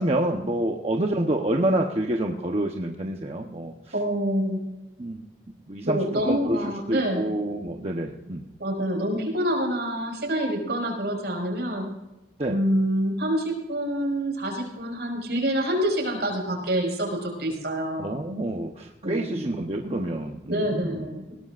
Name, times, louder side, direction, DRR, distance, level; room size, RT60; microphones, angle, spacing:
voice 1, 0.0-3.7 5.0-5.2 5.7-6.6 6.9-8.5 12.4-12.6 18.0-21.1, right 1 dB, 35° right, 2 dB, 1.0 m, -27 dB
voice 2, 3.9-4.6 5.8-7.3 8.6-11.9 12.5-18.1 19.0-19.4 20.5-21.3, equal, 70° right, 1 dB, 5.4 m, -26 dB
21.0 x 17.5 x 2.5 m, 0.99 s
head